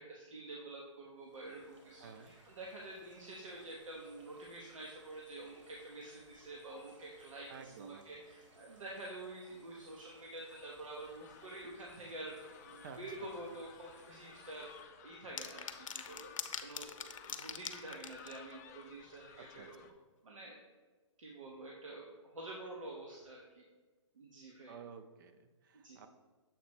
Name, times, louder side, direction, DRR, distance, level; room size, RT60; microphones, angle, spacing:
voice 1, 0.0-16.3 16.6-19.8 20.2-20.6 21.2-23.6 24.1-24.8 25.8-26.1, right 2 dB, 90° right, -2 dB, 1.1 m, -48 dB
sound 1, 1.2-14.8, right 1 dB, 70° right, 1.9 m, -64 dB
voice 2, 2.0-2.3 7.5-8.2 12.8-13.3 19.4-19.9 24.7-26.1, right 6 dB, 40° right, 9 dB, 0.5 m, -53 dB
sound 2, 10.5-19.9, left 8 dB, 30° left, 0.4 m, -57 dB
sound 3, 15.4-18.4, left 7 dB, 85° left, 0.6 m, -42 dB
7.2 x 3.1 x 4.4 m, 1.3 s
hypercardioid pair, 145°, 16 cm